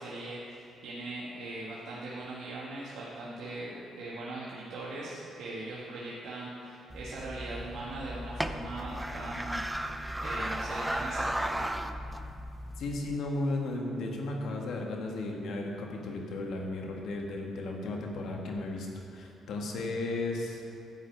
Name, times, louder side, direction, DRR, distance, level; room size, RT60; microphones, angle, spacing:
voice 1, 0.0-11.7, right 2 dB, 75° right, -7 dB, 1.8 m, -40 dB
sound 1, 6.9-13.2, right 1 dB, 10° right, 0.5 m, -35 dB
voice 2, 12.8-20.6, left 2 dB, 75° left, 0 dB, 1.6 m, -35 dB
11.5 x 5.3 x 8.0 m, 2.6 s
cardioid pair, 90°, 0 cm